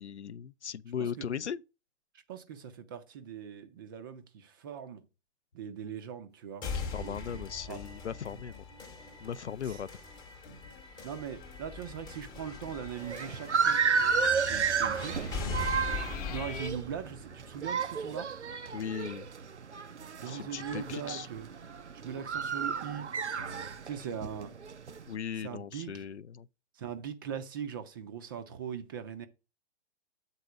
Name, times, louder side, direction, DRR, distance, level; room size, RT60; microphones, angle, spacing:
voice 1, 0.0-1.6 6.7-8.6 9.2-9.9 18.7-19.3 20.3-21.3 25.1-26.5, left 8 dB, 80° left, 0.5 m, -38 dB
voice 2, 2.3-5.0 5.5-6.6 7.0-7.8 9.6-9.8 11.0-13.8 14.5-15.2 16.2-18.3 20.2-21.5 22.0-23.1 23.4-24.5 25.4-26.1 26.8-29.3, right 8 dB, 20° right, 0.4 m, -40 dB
sound 1, 6.6-18.6, left 4 dB, 15° left, 0.8 m, -41 dB
sound 2, 8.0-9.6 10.0-10.2 10.4-10.8 11.2-11.6 12.4-16.7, left 5 dB, 35° left, 0.9 m, -50 dB
sound 3, 13.0-25.1, right 6 dB, 85° right, 0.6 m, -32 dB
8.1 x 4.1 x 4.8 m
figure-of-eight pair, 120°, 34 cm